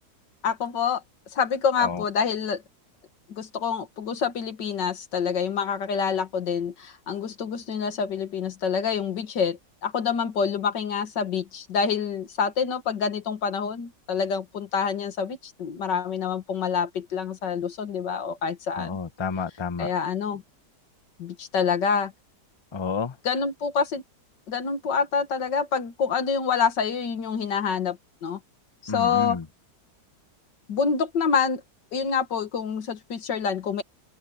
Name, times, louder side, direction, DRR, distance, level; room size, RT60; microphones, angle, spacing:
voice 1, 0.4-1.0 1.3-2.6 3.3-19.0 19.8-20.4 21.2-22.1 23.2-24.0 24.5-28.4 28.8-29.4 30.7-31.6 31.9-33.8, left 6 dB, 90° left, 2.2 m, -27 dB
voice 2, 18.8-19.9 22.7-23.1 28.9-29.4, left 5 dB, 25° left, 0.6 m, -30 dB
omnidirectional pair, 1.9 m